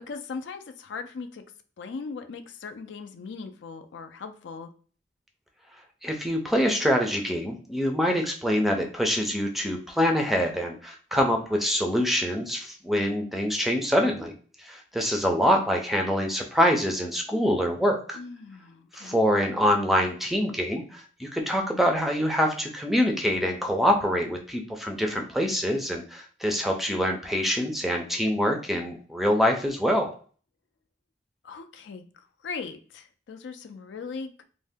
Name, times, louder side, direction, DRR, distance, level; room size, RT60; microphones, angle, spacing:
voice 1, 0.0-1.4 1.8-4.7 18.1-19.2 31.4-34.4, left 4 dB, 85° left, 8 dB, 0.4 m, -39 dB
voice 2, 6.0-14.3 14.6-18.2 18.9-30.1, equal, ahead, 3 dB, 0.4 m, -25 dB
2.6 x 2.1 x 3.4 m, 0.41 s
head